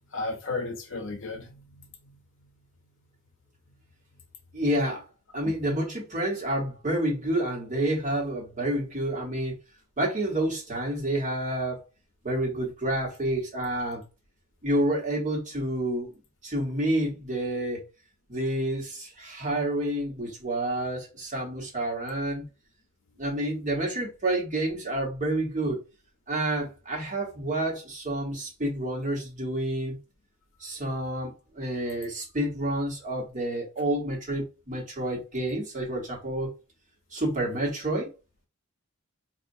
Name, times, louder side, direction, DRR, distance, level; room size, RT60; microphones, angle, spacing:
voice 1, 0.1-2.2 5.4-5.5, left 3 dB, 60° left, 0.7 m, -35 dB
voice 2, 4.5-5.0 5.3-9.6 10.0-11.8 12.2-14.0 14.6-16.1 16.4-17.8 18.3-22.4 23.2-25.8 26.3-30.0 30.6-36.5 37.1-38.1, right 1 dB, 35° right, 1.2 m, -29 dB
4.3 x 2.4 x 2.6 m
head